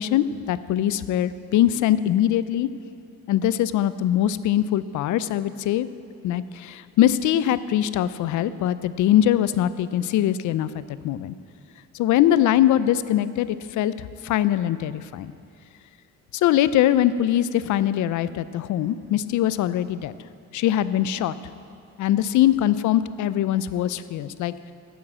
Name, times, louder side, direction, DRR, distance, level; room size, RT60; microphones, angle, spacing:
voice 1, 0.0-2.7 3.3-5.9 6.2-11.3 11.9-13.9 14.2-15.3 16.3-20.1 20.5-21.3 22.0-24.5, left 12 dB, 75° left, 15 dB, 0.5 m, -22 dB
9.2 x 8.6 x 7.7 m, 2.4 s
cardioid pair, 90°, 30 cm